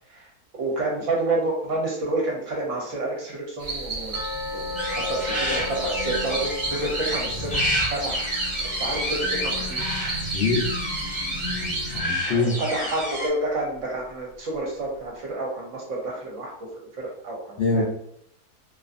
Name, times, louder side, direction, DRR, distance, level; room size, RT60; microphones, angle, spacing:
voice 1, 0.6-4.2 4.5-7.6 7.9-8.3 8.8-9.8 12.3-16.7 17.0-17.8, right 2 dB, 60° right, -2 dB, 0.9 m, -29 dB
sound 1, 3.6-12.0, right 2 dB, 80° right, 0.4 m, -31 dB
sound 2, 4.1-11.0 11.3-11.4 11.9-12.0 12.5-12.6, left 3 dB, 55° left, 0.8 m, -38 dB
sound 3, 4.8-13.3, equal, 10° left, 0.3 m, -30 dB
voice 2, 10.3-10.6 11.5-12.5 17.6-17.8, left 3 dB, 85° left, -3 dB, 0.5 m, -24 dB
2.5 x 2.4 x 2.4 m, 0.72 s
omnidirectional pair, 1.7 m